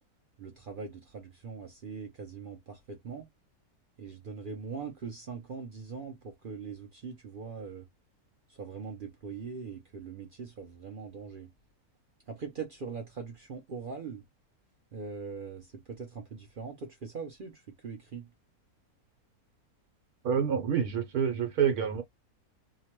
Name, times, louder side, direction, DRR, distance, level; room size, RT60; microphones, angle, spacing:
voice 1, 0.4-3.3 4.0-7.9 8.5-11.5 12.3-14.2 14.9-18.3, right 5 dB, 60° right, 0.5 m, -41 dB
voice 2, 20.2-22.0, right 7 dB, 80° right, 1.2 m, -27 dB
2.9 x 2.0 x 2.9 m
omnidirectional pair, 1.6 m